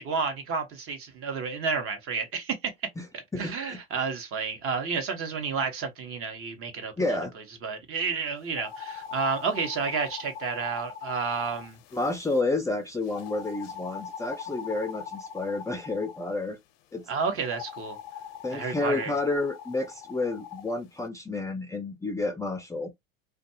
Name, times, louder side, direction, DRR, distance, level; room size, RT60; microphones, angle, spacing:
voice 1, 0.0-2.7 3.4-7.2 7.6-11.8 17.1-18.0 18.5-19.1, right 5 dB, 45° right, 1.0 m, -31 dB
voice 2, 7.0-7.3 11.9-16.6 16.9-17.0 18.4-22.9, left 2 dB, 10° left, 0.4 m, -30 dB
sound 1, 8.5-12.4 13.1-16.4 17.4-20.7, left 8 dB, 75° left, 0.6 m, -42 dB
2.5 x 2.3 x 2.7 m
supercardioid pair, 95°, 30 cm